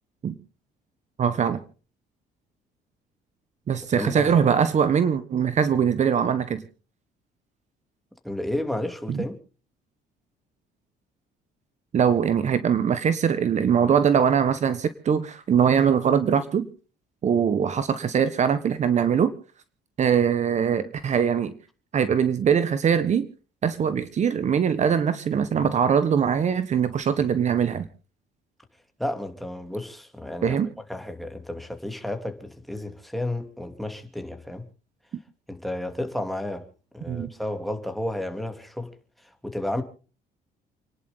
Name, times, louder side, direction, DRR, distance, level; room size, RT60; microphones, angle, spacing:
voice 1, 1.2-1.6 3.7-6.6 9.1-9.2 11.9-16.7 17.2-19.3 20.0-21.5 21.9-23.3 23.6-27.9 30.4-30.7 37.1-37.3, right 7 dB, 45° right, 1.3 m, -22 dB
voice 2, 3.9-4.3 8.2-9.4 29.0-30.6 30.9-34.7 35.5-36.7 36.9-38.9 39.2-39.8, left 1 dB, ahead, 2.8 m, -32 dB
29.5 x 11.0 x 3.8 m
cardioid pair, 110°, 17 cm